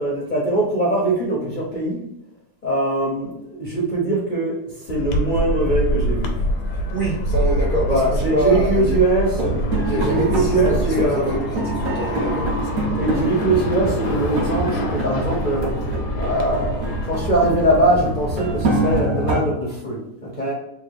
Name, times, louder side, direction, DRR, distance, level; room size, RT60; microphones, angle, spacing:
voice 1, 0.0-2.0 2.6-6.3 7.9-11.5 13.0-15.9 16.1-20.5, right 1 dB, 55° left, -4 dB, 0.5 m, -22 dB
sound 1, 4.9-19.0, equal, 85° left, 1.2 m, -26 dB
voice 2, 6.9-8.0 8.3-9.0 9.9-12.5, right 2 dB, 85° right, -3 dB, 0.4 m, -25 dB
sound 2, 9.3-19.4, right 2 dB, 65° right, 1.1 m, -25 dB
3.4 x 2.1 x 3.3 m, 0.86 s
omnidirectional pair, 1.7 m